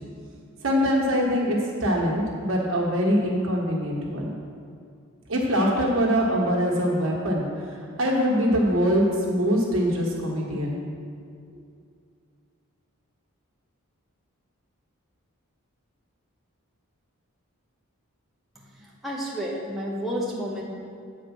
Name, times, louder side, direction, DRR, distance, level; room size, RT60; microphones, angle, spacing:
voice 1, 0.6-4.4 5.3-10.8, equal, 60° right, -2 dB, 1.6 m, -23 dB
voice 2, 18.8-20.6, equal, ahead, -5 dB, 0.8 m, -31 dB
8.5 x 4.9 x 6.0 m, 2.3 s
head